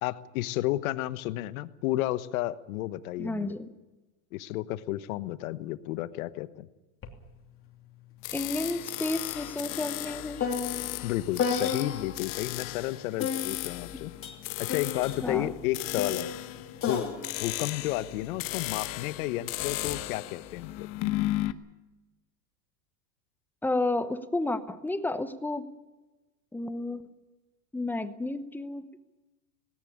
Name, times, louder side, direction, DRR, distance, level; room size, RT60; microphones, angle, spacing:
voice 1, 0.0-3.5 4.3-6.7 11.0-14.1 14.6-16.3 16.9-17.0 17.4-20.9, left 16 dB, 60° left, 14 dB, 1.2 m, -32 dB
voice 2, 3.2-3.7 8.3-10.5 15.2-15.5 23.6-25.7 26.5-27.0 27.7-28.9, left 2 dB, 5° left, 12 dB, 0.9 m, -31 dB
sound 1, 7.0-7.2 7.5-12.3 13.2-18.7 19.6-20.0, left 6 dB, 25° left, 2.9 m, -35 dB
sound 2, 8.2-21.5, left 17 dB, 45° left, 1.1 m, -36 dB
18.5 x 17.0 x 10.0 m, 1.1 s
supercardioid pair, 130°, 47 cm